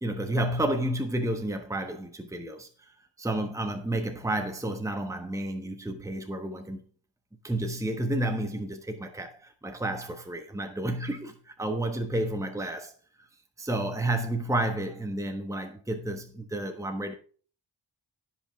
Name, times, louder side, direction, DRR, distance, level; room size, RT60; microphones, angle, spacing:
voice 1, 0.0-2.9 3.2-6.8 7.4-12.9 13.6-17.1, right 1 dB, 5° right, 1.2 m, -31 dB
16.0 x 5.7 x 3.6 m
cardioid pair, 65°, 44 cm